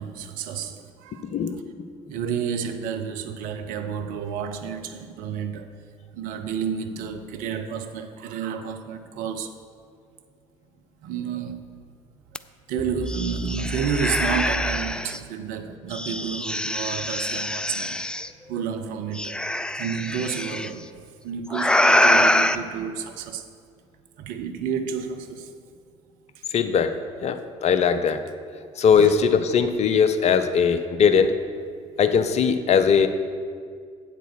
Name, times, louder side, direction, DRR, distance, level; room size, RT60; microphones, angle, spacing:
voice 1, 0.0-1.3 2.1-5.7 6.1-9.5 11.0-11.8 12.7-18.0 18.5-19.4 19.8-23.5 24.2-25.5 26.5-26.6, right 7 dB, 60° right, 0.8 m, -30 dB
voice 2, 1.2-1.7 26.5-28.2 28.8-31.3 32.0-33.1, left 6 dB, 40° left, 0.7 m, -20 dB
sound 1, 12.3-12.4 12.8-15.2 15.9-18.3 19.1-20.7 21.5-22.6, left 1 dB, 5° left, 0.4 m, -24 dB
8.2 x 8.1 x 6.4 m
figure-of-eight pair, 55°, 16 cm